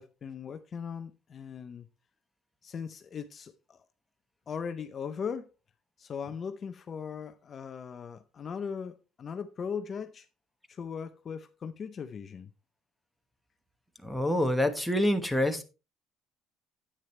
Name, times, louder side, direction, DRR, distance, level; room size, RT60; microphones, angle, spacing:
voice 1, 0.0-1.9 2.6-3.8 4.5-5.5 6.0-10.3 10.7-12.5, left 6 dB, 30° left, 0.6 m, -39 dB
voice 2, 14.0-15.6, left 1 dB, ahead, 1.1 m, -26 dB
10.0 x 8.7 x 3.2 m
cardioid pair, 140°, 0 cm